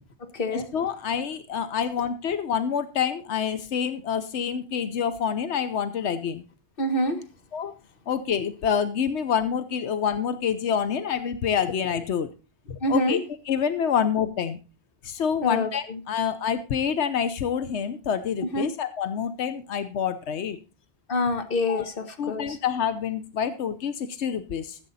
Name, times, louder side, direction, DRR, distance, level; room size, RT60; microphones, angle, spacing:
voice 1, 0.2-0.7 6.8-7.2 12.8-13.2 15.4-16.0 18.5-18.7 21.1-22.6, left 1 dB, 55° left, 7 dB, 1.5 m, -27 dB
voice 2, 0.7-6.4 7.5-7.7 8.1-12.3 12.7-13.2 13.5-14.6 15.0-20.6 21.7-21.8 22.2-24.8, left 7 dB, 90° left, 11 dB, 1.1 m, -27 dB
14.5 x 8.2 x 4.1 m, 0.33 s
omnidirectional pair, 1.1 m